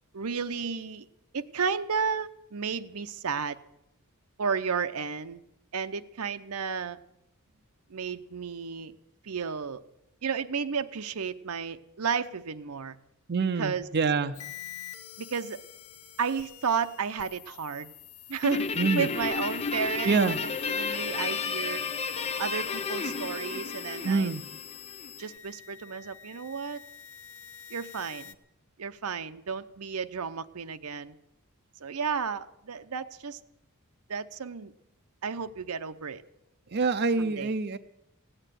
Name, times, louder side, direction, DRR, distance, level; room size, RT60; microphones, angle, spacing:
voice 1, 0.1-1.0 1.3-3.6 4.4-5.4 5.7-7.0 7.9-8.9 9.2-9.8 10.2-13.0 13.6-13.9 15.2-15.6 16.2-17.9 18.3-21.8 22.4-24.3 25.2-26.8 27.7-28.3 28.8-31.2 31.8-33.4 34.1-34.7 35.2-36.2 37.2-37.5, right 6 dB, 80° right, 10 dB, 0.7 m, -32 dB
voice 2, 13.3-14.4 18.8-19.1 20.0-20.4 24.0-24.4 36.7-37.8, right 4 dB, 50° right, 8 dB, 0.6 m, -26 dB
sound 1, 14.3-28.3, left 10 dB, 80° left, 0.9 m, -45 dB
Guitar, 18.4-25.1, left 5 dB, 30° left, 0.5 m, -32 dB
16.5 x 8.9 x 9.1 m, 0.86 s
head